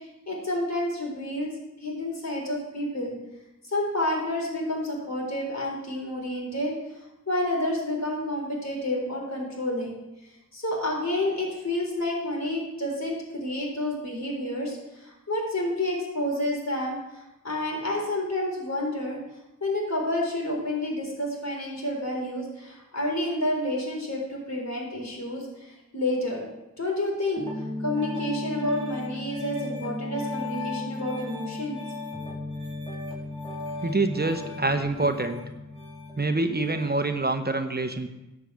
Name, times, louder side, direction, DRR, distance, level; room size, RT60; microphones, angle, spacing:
voice 1, 0.0-1.5 1.8-3.2 3.6-6.7 7.3-10.0 10.5-19.2 19.6-26.4 26.8-27.4 27.8-31.8 35.0-35.1, left 1 dB, 60° left, -2 dB, 3.8 m, -29 dB
Piano, 27.4-37.1, left 2 dB, 20° left, 3.7 m, -35 dB
voice 2, 33.8-35.4 36.2-38.1, right 2 dB, 30° right, 7 dB, 0.9 m, -26 dB
11.0 x 4.9 x 8.2 m, 0.95 s
cardioid pair, 50°, 31 cm